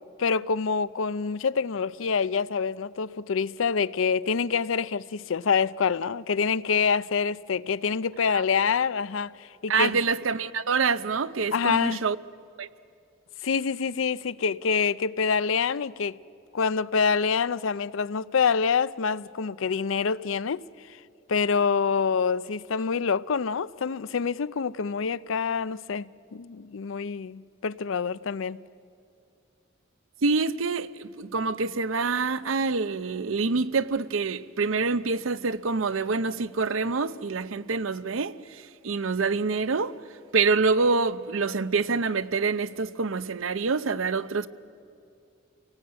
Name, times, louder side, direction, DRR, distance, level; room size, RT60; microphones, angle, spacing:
voice 1, 0.2-10.0 11.5-12.0 13.4-16.2 16.5-20.6 21.3-28.6, left 5 dB, 80° left, 0.5 m, -26 dB
voice 2, 9.7-12.2 12.6-12.7 30.2-39.9 40.3-44.5, right 4 dB, 85° right, 0.7 m, -26 dB
29.0 x 18.5 x 8.8 m
head